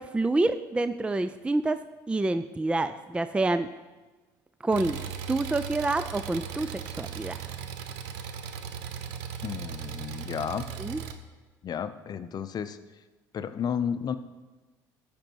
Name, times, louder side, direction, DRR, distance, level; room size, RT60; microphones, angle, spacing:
voice 1, 0.0-3.7 4.6-5.0 5.3-7.4 10.8-11.0, right 2 dB, 10° right, 11 dB, 0.4 m, -27 dB
Engine, 4.7-11.1, right 8 dB, 80° right, 0.7 m, -37 dB
voice 2, 9.4-10.7 11.6-12.8 13.3-14.2, left 7 dB, 45° left, 11 dB, 0.7 m, -32 dB
14.0 x 5.3 x 4.6 m, 1.2 s
hypercardioid pair, 70°, 9 cm